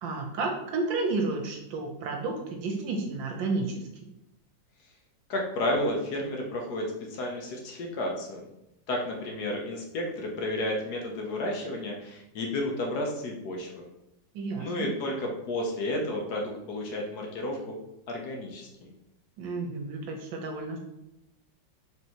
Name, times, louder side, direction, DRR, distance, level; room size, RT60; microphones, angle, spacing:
voice 1, 0.0-3.8 14.3-14.9 19.4-20.8, right 3 dB, 85° right, 2 dB, 1.5 m, -31 dB
voice 2, 5.3-8.4 8.9-13.9 14.6-17.8 18.1-18.9, left 1 dB, 65° left, 0 dB, 1.1 m, -32 dB
4.3 x 3.3 x 2.9 m, 0.86 s
omnidirectional pair, 2.0 m